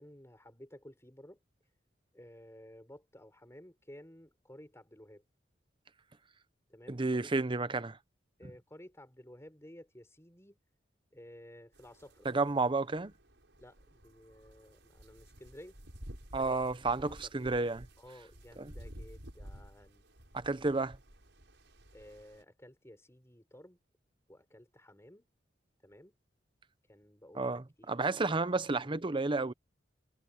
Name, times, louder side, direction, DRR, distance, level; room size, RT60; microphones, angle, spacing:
voice 1, 0.0-1.4 2.1-5.2 6.7-7.2 8.4-10.6 11.1-12.3 13.6-15.8 16.4-16.6 17.0-17.3 18.0-20.0 21.9-23.8 24.3-25.3 25.8-26.2 26.9-28.0 28.6-28.9, left 1 dB, 15° left, 7.0 m, -54 dB
voice 2, 6.9-8.0 12.2-13.1 16.3-17.9 18.6-18.7 20.3-21.0 27.3-29.5, right 3 dB, 25° right, 0.8 m, -31 dB
sound 1, 11.7-22.4, equal, 75° right, 7.2 m, -53 dB
head